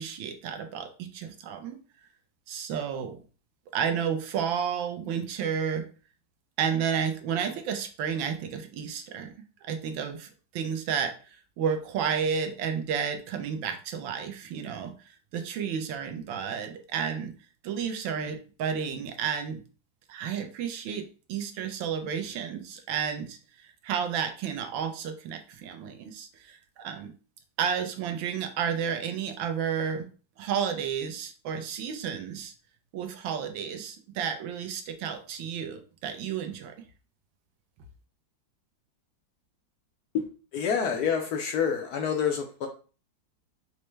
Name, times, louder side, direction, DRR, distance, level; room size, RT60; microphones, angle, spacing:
voice 1, 0.0-1.8 2.5-3.2 3.7-5.8 6.6-9.3 9.6-14.9 15.3-17.3 17.6-19.6 20.1-27.1 27.6-30.1 30.4-32.5 32.9-36.7, right 7 dB, 90° right, 6 dB, 1.4 m, -31 dB
voice 2, 40.5-42.7, left 7 dB, 75° left, 3 dB, 0.9 m, -27 dB
5.5 x 2.1 x 3.1 m, 0.37 s
omnidirectional pair, 2.1 m